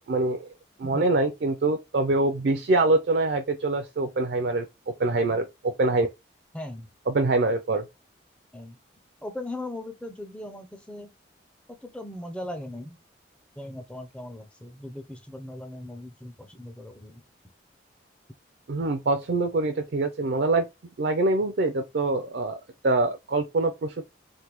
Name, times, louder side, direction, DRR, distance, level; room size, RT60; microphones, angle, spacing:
voice 1, 0.1-0.5 0.8-6.1 7.1-7.8 18.7-20.7 21.0-22.6 22.8-24.1, right 2 dB, 55° right, 0.4 m, -24 dB
voice 2, 6.5-6.9 8.5-8.8 9.2-11.1 11.7-13.0 13.6-17.2, left 1 dB, 5° left, 0.4 m, -38 dB
3.3 x 2.1 x 2.9 m
head